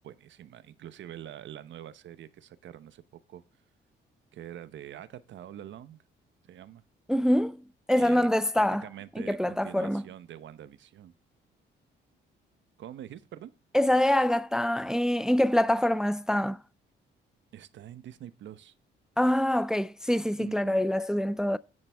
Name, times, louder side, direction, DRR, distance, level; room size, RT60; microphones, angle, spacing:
voice 1, 0.0-3.4 4.3-6.0 6.5-6.8 8.0-8.3 8.6-11.1 12.8-13.5 17.5-18.7 20.4-20.8, right 11 dB, 70° right, 0.9 m, -45 dB
voice 2, 7.1-7.6 7.9-8.8 9.2-10.0 13.7-16.6 19.2-21.6, left 1 dB, 5° right, 0.4 m, -25 dB
9.9 x 8.1 x 3.4 m
cardioid pair, 90°, 20 cm